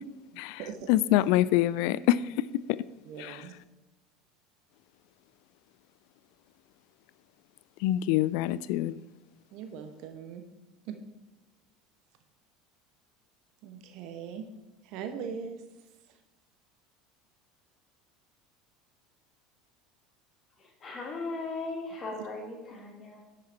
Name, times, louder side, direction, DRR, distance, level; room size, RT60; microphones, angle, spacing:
voice 1, 0.3-0.9 3.0-3.5 9.5-10.4 10.8-11.0 13.6-14.5 14.8-15.6 16.1-16.2 22.1-22.2, right 7 dB, 55° right, 1.1 m, -40 dB
voice 2, 0.9-2.8 3.2-3.4 7.8-9.0, left 14 dB, 55° left, 0.3 m, -26 dB
voice 3, 20.8-23.2, left 3 dB, 30° left, 2.6 m, -37 dB
10.0 x 6.5 x 4.4 m
figure-of-eight pair, 70°, 0 cm